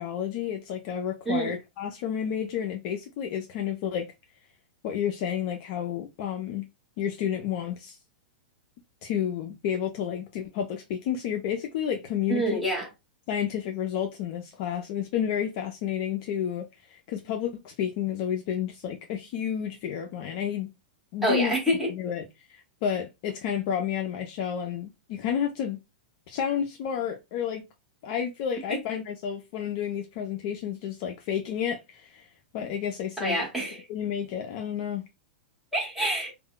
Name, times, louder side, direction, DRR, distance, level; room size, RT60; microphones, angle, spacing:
voice 1, 0.0-4.1 4.8-6.6 7.0-8.0 9.0-12.6 13.3-20.7 21.1-21.5 21.9-25.8 26.3-27.6 28.0-32.3 32.5-33.5 33.9-35.0, left 9 dB, 35° left, 0.4 m, -31 dB
voice 2, 12.3-12.9 21.2-21.9 28.7-28.8 33.2-33.8 35.7-36.3, right 1 dB, 5° right, 0.9 m, -26 dB
2.1 x 2.1 x 3.7 m
supercardioid pair, 165°, 5 cm